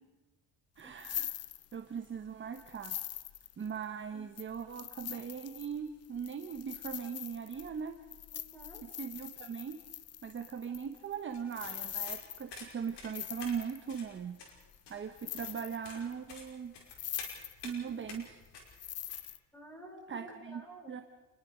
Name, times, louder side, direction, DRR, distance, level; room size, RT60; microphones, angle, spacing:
sound 1, 0.8-2.0 2.5-3.8 4.4-13.9 14.5-14.9 15.2-16.1 16.5-16.6 16.9-17.8 18.1-19.4, left 11 dB, 35° left, 0.7 m, -43 dB
voice 1, 0.8-1.5 1.7-3.0 3.6-8.0 8.8-9.8 10.2-14.4 14.9-16.7 17.6-18.4 20.1-20.6 20.9-21.0, right 7 dB, 25° right, 7 dB, 1.1 m, -40 dB
voice 2, 8.3-8.8 19.5-21.0, right 1 dB, 5° left, 2 dB, 5.2 m, -51 dB
sound 2, 11.3-19.2, left 4 dB, 65° left, 5.7 m, -50 dB
28.5 x 20.5 x 5.1 m, 1.2 s
cardioid pair, 145°, 45 cm